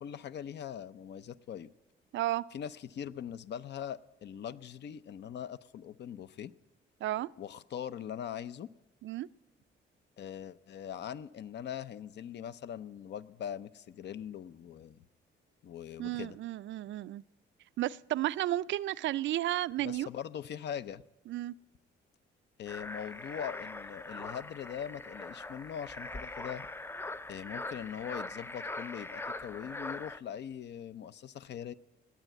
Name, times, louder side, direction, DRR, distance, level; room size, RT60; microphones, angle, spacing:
voice 1, 0.0-1.7 2.5-6.5 7.4-8.7 10.2-15.0 15.6-16.4 19.8-21.0 22.6-26.7 27.3-31.7, left 9 dB, 60° left, 0.6 m, -41 dB
voice 2, 2.1-2.4 7.0-7.3 9.0-9.3 16.0-17.2 17.8-20.1 21.3-21.5, right 14 dB, 70° right, 0.4 m, -33 dB
sound 1, 22.7-30.2, left 2 dB, 10° left, 0.4 m, -42 dB
19.0 x 8.3 x 9.0 m
cardioid pair, 90°, 20 cm